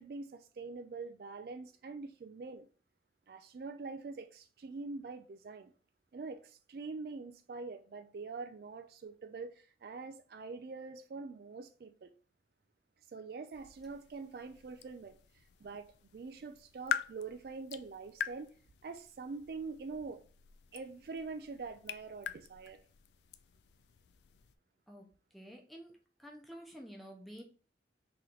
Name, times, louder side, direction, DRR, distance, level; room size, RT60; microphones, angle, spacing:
voice 1, 0.0-2.7 3.3-5.7 6.1-12.1 13.1-18.5 18.8-20.2 20.7-22.8, right 4 dB, 60° right, 0.3 m, -44 dB
sound 1, 13.5-24.6, left 8 dB, 75° left, 0.3 m, -45 dB
voice 2, 25.3-25.9 26.2-27.4, equal, ahead, 0.6 m, -50 dB
3.1 x 3.0 x 3.8 m
head